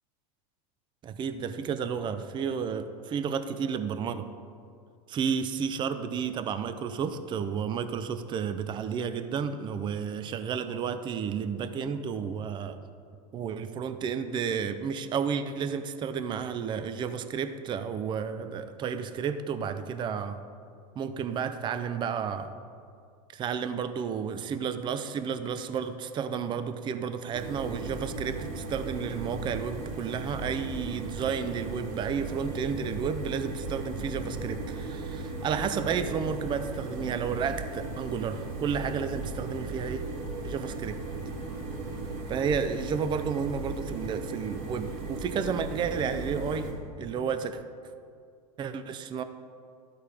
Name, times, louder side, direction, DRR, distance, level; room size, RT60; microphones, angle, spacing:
voice 1, 1.0-4.3 5.1-12.8 13.3-20.4 21.0-22.5 23.3-40.1 40.4-41.0 42.3-46.7 47.0-47.6 48.6-49.2, right 6 dB, 25° right, 10 dB, 0.4 m, -32 dB
sound 1, 27.3-46.7, right 3 dB, 50° right, 2.3 m, -37 dB
12.5 x 4.2 x 4.8 m, 2.3 s
supercardioid pair, 120°, 19 cm